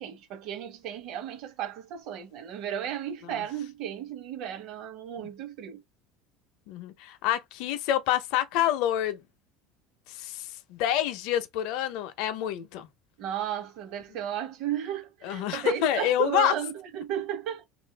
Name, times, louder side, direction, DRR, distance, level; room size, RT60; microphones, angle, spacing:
voice 1, 0.0-5.8 13.2-17.6, right 10 dB, 50° right, 0.9 m, -34 dB
voice 2, 6.7-9.2 10.1-12.9 15.2-16.5, left 12 dB, 60° left, 0.6 m, -27 dB
2.6 x 2.5 x 3.3 m
cardioid pair, 160°, 0 cm